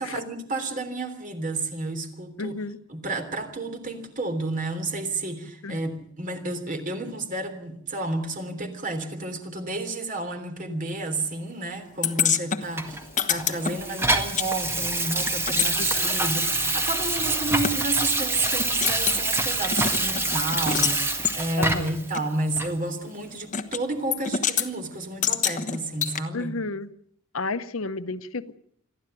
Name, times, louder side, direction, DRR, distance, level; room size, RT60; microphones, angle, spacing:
voice 1, 0.0-2.6 2.9-26.6, right 2 dB, 40° right, 3.3 m, -31 dB
voice 2, 2.4-2.8 5.6-5.8 15.8-16.0 21.6-21.9 26.3-26.9 27.3-28.6, left 3 dB, 70° left, 0.9 m, -31 dB
sound 1, 12.0-14.5 14.7-17.8 18.2-18.3 18.6-19.2 19.7-21.0 21.2-21.4 22.1-22.2 23.5-23.8 24.1-24.7 25.2-26.2, left 8 dB, 35° left, 1.3 m, -28 dB
Water tap faucet / Sink (filling or washing), 12.8-22.0 22.6-22.7, right 2 dB, 10° right, 1.8 m, -26 dB
28.0 x 11.5 x 9.0 m
head